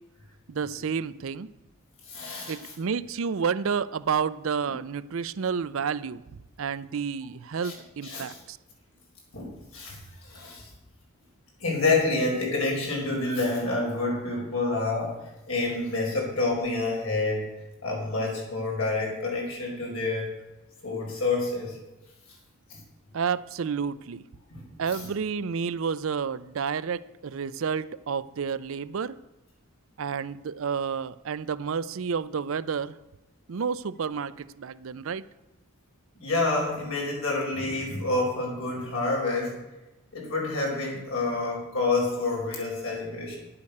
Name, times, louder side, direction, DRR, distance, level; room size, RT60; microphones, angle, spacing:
voice 1, 0.5-1.5 2.5-6.2 6.6-8.6 23.1-24.2 24.8-29.2 30.0-33.0 33.5-35.2, right 6 dB, 65° right, 16 dB, 0.5 m, -30 dB
voice 2, 2.1-2.7 7.6-7.7 8.0-8.4 9.3-10.7 11.6-17.5 17.8-20.3 20.8-21.8 22.7-22.8 24.5-25.1 36.2-39.6 40.1-43.4, left 3 dB, 70° left, -2 dB, 4.7 m, -28 dB
10.5 x 8.6 x 6.6 m, 1.0 s
head